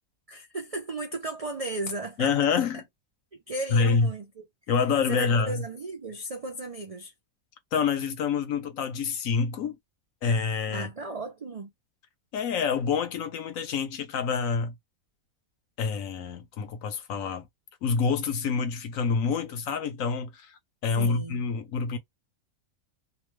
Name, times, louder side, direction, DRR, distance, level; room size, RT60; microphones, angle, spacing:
voice 1, 0.3-2.3 3.5-4.4 5.1-7.1 10.7-11.7 20.9-21.4, right 2 dB, 60° right, 0.3 m, -35 dB
voice 2, 2.2-2.8 3.7-4.1 4.7-5.6 7.7-9.8 10.2-10.9 12.3-14.7 15.8-17.5 17.8-22.0, left 5 dB, 70° left, 1.1 m, -27 dB
2.9 x 2.2 x 3.1 m
omnidirectional pair, 1.5 m